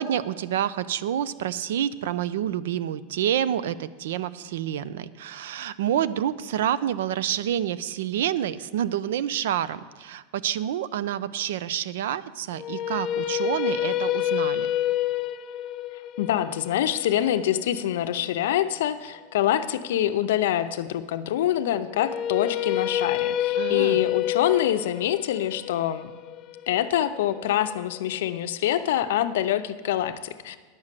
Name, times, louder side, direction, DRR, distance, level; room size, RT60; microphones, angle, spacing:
voice 1, 0.0-14.7 23.6-24.1, right 10 dB, 85° right, 17 dB, 0.5 m, -28 dB
sound 1, 12.5-18.6 21.9-28.0, left 12 dB, 30° left, 0.3 m, -28 dB
voice 2, 16.2-26.1 26.7-30.6, left 11 dB, 80° left, 11 dB, 0.6 m, -25 dB
10.5 x 6.4 x 7.5 m, 1.4 s
supercardioid pair, 175°, 0 cm